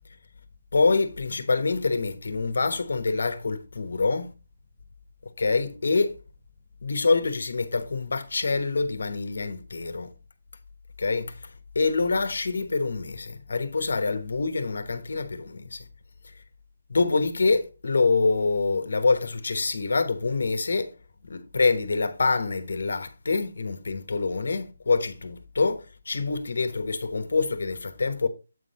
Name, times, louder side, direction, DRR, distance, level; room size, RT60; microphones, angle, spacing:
voice 1, 0.7-4.3 5.4-6.1 6.8-10.1 11.0-11.5 11.7-15.8 16.9-20.9 21.2-28.3, left 3 dB, 70° left, 1.0 m, -26 dB
8.1 x 3.8 x 4.1 m
hypercardioid pair, 170°, 0 cm